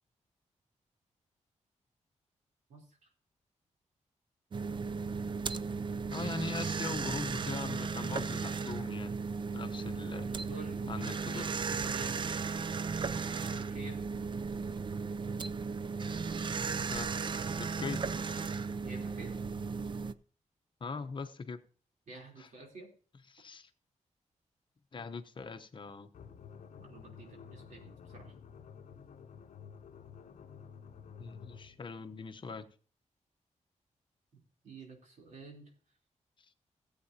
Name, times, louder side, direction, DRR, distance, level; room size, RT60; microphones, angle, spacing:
voice 1, 2.7-3.1 10.2-12.4 13.5-14.0 18.8-19.4 22.1-22.9 26.8-28.3 34.6-35.7, right 3 dB, 80° right, 3.5 m, -49 dB
sound 1, 4.5-20.1, right 5 dB, 40° right, 0.4 m, -35 dB
voice 2, 6.1-9.2 9.5-10.3 10.9-11.8 16.9-17.1 17.5-18.0 20.8-21.6 22.4-22.5 23.3-23.7 24.9-26.1 31.2-32.7, left 4 dB, 40° left, 0.9 m, -41 dB
sound 2, 26.1-31.8, left 7 dB, 75° left, 0.7 m, -51 dB
18.0 x 8.3 x 2.8 m
wide cardioid pair, 155°, 13 cm